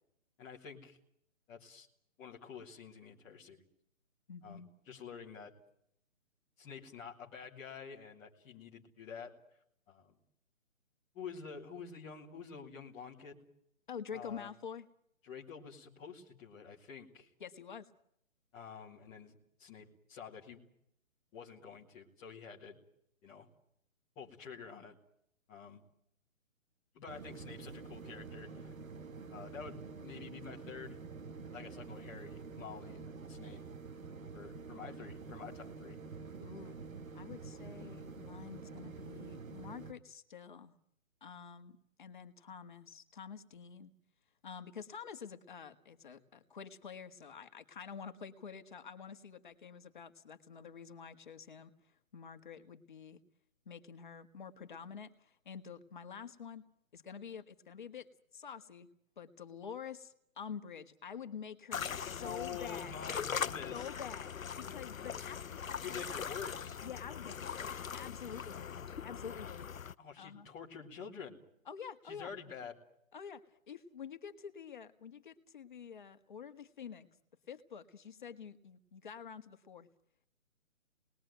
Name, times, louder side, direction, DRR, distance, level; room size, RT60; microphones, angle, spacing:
voice 1, 0.4-1.0 1.5-1.9 2.2-3.6 4.4-5.5 6.6-9.4 9.9-10.2 11.1-13.4 14.1-14.5 15.2-17.3 18.5-20.7 21.3-22.8 23.2-23.5 24.1-24.9 25.5-25.8 26.9-28.7 29.3-31.0 31.5-33.6 34.3-36.0 62.2-63.9 65.8-66.8 70.0-71.4 72.0-72.7, left 6 dB, 5° left, -7 dB, 1.1 m, -48 dB
voice 2, 4.3-4.7 13.9-14.9 17.4-17.9 36.4-36.8 37.1-40.7 41.2-43.9 44.4-51.7 52.1-53.2 53.7-56.7 56.9-58.9 59.2-62.9 63.7-64.3 64.6-66.2 66.8-69.8 70.2-70.5 71.7-72.3 73.1-77.1 77.5-79.9, left 7 dB, 35° left, 8 dB, 1.8 m, -48 dB
sound 1, 27.1-39.9, right 4 dB, 80° right, 2.4 m, -48 dB
sound 2, 61.7-69.9, left 7 dB, 80° left, 1.1 m, -41 dB
28.5 x 20.5 x 9.3 m, 0.77 s
hypercardioid pair, 170°, 40 cm